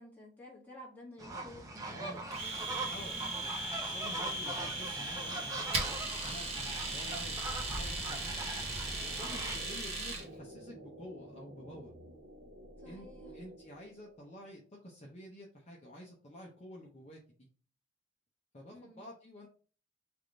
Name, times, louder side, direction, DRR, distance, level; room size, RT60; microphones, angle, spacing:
voice 1, 0.0-3.3 9.2-9.5 12.8-13.3 18.7-19.0, left 1 dB, 10° left, -5 dB, 1.5 m, -53 dB
sound 1, 1.2-9.6, right 2 dB, 20° right, 0.6 m, -41 dB
voice 2, 1.9-2.2 2.9-8.5 9.0-11.9 12.8-17.5 18.5-19.5, equal, 35° left, -2 dB, 0.7 m, -50 dB
Domestic sounds home sounds, 2.3-10.3, right 2 dB, 35° right, 0.9 m, -38 dB
sound 2, 7.1-14.5, equal, 75° right, 1.1 m, -54 dB
3.4 x 2.5 x 4.4 m, 0.40 s
head